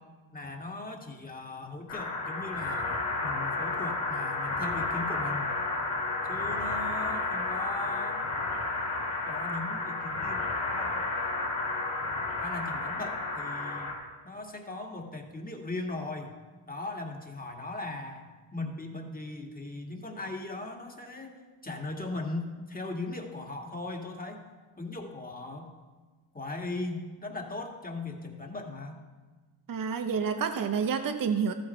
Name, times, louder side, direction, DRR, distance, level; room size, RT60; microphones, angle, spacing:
voice 1, 0.3-2.9 3.2-5.6 6.3-8.3 9.3-11.1 12.4-13.9 14.2-16.3 16.7-24.4 24.8-25.7 26.3-29.0, left 2 dB, 20° left, 2 dB, 2.0 m, -38 dB
sound 1, 1.9-13.9, left 3 dB, 80° left, 2.5 m, -32 dB
voice 2, 29.7-31.5, right 6 dB, 45° right, 7 dB, 1.0 m, -29 dB
13.5 x 8.7 x 4.4 m, 1.3 s
supercardioid pair, 55°, 45 cm